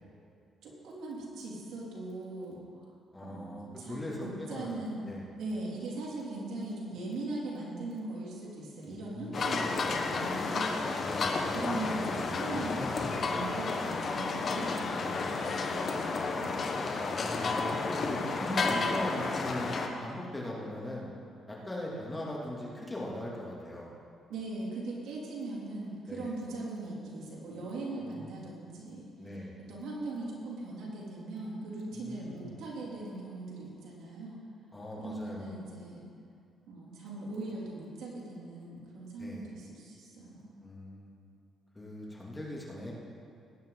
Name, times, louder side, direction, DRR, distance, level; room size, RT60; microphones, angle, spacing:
voice 1, 0.6-2.9 3.2-5.1 5.4-10.9 11.5-16.7 24.3-29.1 29.7-34.4 35.0-36.0 36.7-40.5, right 2 dB, 80° right, -4 dB, 3.3 m, -40 dB
voice 2, 3.1-4.8 5.0-5.2 8.8-9.7 11.0-11.4 14.4-15.2 17.2-21.1 21.5-23.9 26.1-26.3 28.0-28.3 29.2-29.5 31.9-32.6 34.7-35.5 39.2-39.5 40.6-41.1 41.7-42.9, left 1 dB, 15° left, -4 dB, 3.0 m, -40 dB
sound 1, 9.3-19.9, left 4 dB, 50° left, 1.3 m, -32 dB
18.5 x 9.5 x 4.1 m, 2.4 s
cardioid pair, 90°, 0 cm